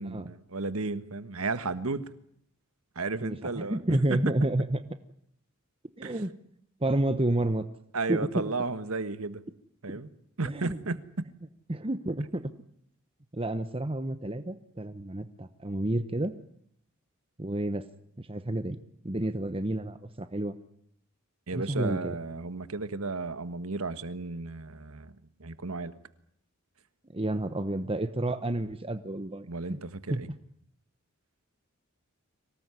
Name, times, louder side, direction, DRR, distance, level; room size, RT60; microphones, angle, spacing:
voice 1, 0.0-2.0 2.9-3.8 4.1-4.3 6.0-6.1 7.9-9.4 9.8-10.1 10.4-11.3 21.5-25.1 25.4-25.9 29.4-30.3, right 3 dB, 90° right, 13 dB, 1.5 m, -33 dB
voice 2, 3.2-4.8 6.0-6.3 6.8-7.7 8.1-8.4 10.4-10.8 11.7-12.5 13.3-16.3 17.4-17.9 18.2-18.8 19.0-20.5 21.5-22.2 27.1-29.8 30.1-30.2, right 1 dB, 25° right, 10 dB, 1.0 m, -30 dB
25.0 x 18.5 x 9.8 m, 0.69 s
head